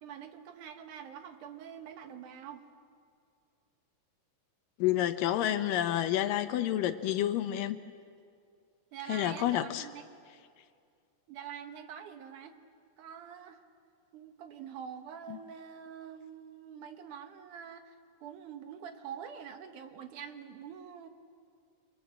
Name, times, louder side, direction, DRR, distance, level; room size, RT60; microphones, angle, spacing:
voice 1, 0.0-2.7 8.9-10.1 11.3-12.6 13.0-13.6 14.1-17.9 18.2-21.1, right 8 dB, 70° right, 7 dB, 2.7 m, -45 dB
voice 2, 4.8-7.8 9.1-9.9 15.3-15.4, left 12 dB, 85° left, 10 dB, 2.6 m, -29 dB
28.0 x 24.5 x 7.6 m, 2.3 s
omnidirectional pair, 3.9 m